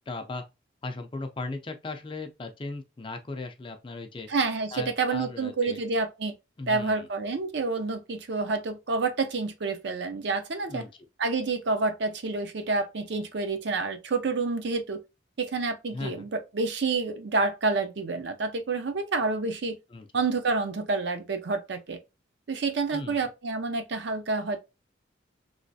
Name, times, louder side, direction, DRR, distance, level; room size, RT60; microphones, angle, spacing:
voice 1, 0.1-0.4 0.8-4.3 4.7-5.8 6.6-7.1 10.7-10.9 15.9-16.3 19.9-20.1 22.9-23.3, left 3 dB, 25° left, 0.4 m, -37 dB
voice 2, 4.3-6.3 6.7-10.8 11.2-15.0 15.4-19.8 20.1-22.0 22.5-24.6, right 3 dB, 60° right, 0.5 m, -28 dB
3.2 x 3.0 x 2.7 m
head